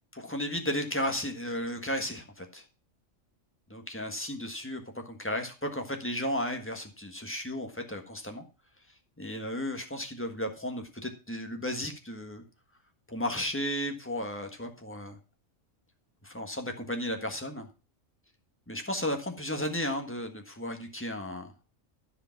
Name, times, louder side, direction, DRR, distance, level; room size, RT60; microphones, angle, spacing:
voice 1, 0.1-2.6 3.7-8.4 9.2-12.4 13.1-15.2 16.2-17.7 18.7-21.5, left 1 dB, 10° left, 4 dB, 1.4 m, -34 dB
13.5 x 5.1 x 5.8 m, 0.33 s
omnidirectional pair, 1.3 m